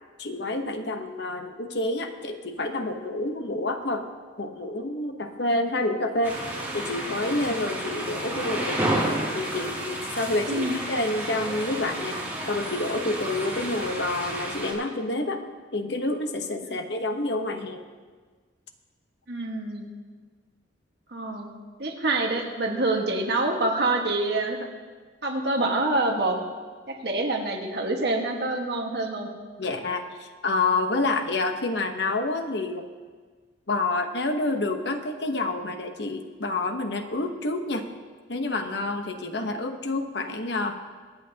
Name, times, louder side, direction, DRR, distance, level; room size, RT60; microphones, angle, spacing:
voice 1, 0.2-4.1 4.4-6.4 6.7-8.8 9.3-15.4 15.7-17.8 29.6-32.8 33.7-37.9 38.3-40.8, left 2 dB, 65° left, 5 dB, 1.0 m, -28 dB
sound 1, 6.2-14.7, right 1 dB, 10° right, 2.6 m, -31 dB
voice 2, 19.3-19.9 21.1-21.5 21.8-24.6 25.2-26.4 26.9-29.3, right 2 dB, 60° right, 1 dB, 1.6 m, -26 dB
24.5 x 9.1 x 2.9 m, 1.5 s
head